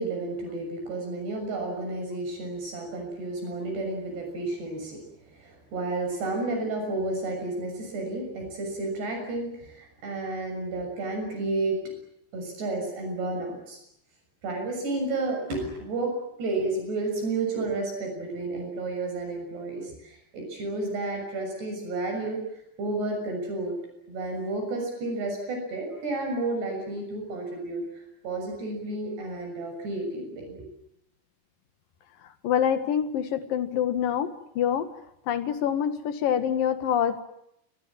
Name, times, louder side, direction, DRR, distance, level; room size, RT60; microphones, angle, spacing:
voice 1, 0.0-5.0 5.3-11.8 12.3-13.8 14.4-22.4 22.8-23.8 24.1-30.5, right 2 dB, 70° right, 3 dB, 8.7 m, -31 dB
voice 2, 32.4-34.3 34.6-34.9 35.3-37.2, left 9 dB, 60° left, 9 dB, 3.2 m, -25 dB
28.0 x 22.5 x 7.5 m, 0.78 s
omnidirectional pair, 5.0 m